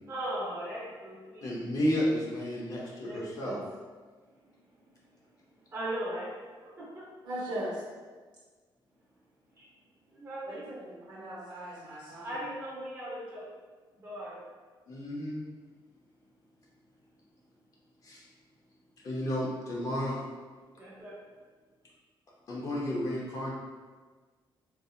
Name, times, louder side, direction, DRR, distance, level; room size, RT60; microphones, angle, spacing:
voice 1, 0.1-1.5 3.0-3.6 5.7-6.3 6.6-7.1 9.6-9.7 10.1-10.7 12.2-13.5 14.0-14.4 20.8-21.2, right 1 dB, 30° right, -7 dB, 1.1 m, -38 dB
voice 2, 1.4-3.6 14.9-15.4 18.0-18.2 19.0-20.2 22.5-23.5, equal, 40° left, -4 dB, 0.7 m, -32 dB
voice 3, 7.2-7.7 10.5-12.3, right 1 dB, 60° right, -6 dB, 1.2 m, -39 dB
4.0 x 2.7 x 2.4 m, 1.4 s
cardioid pair, 165°, 9 cm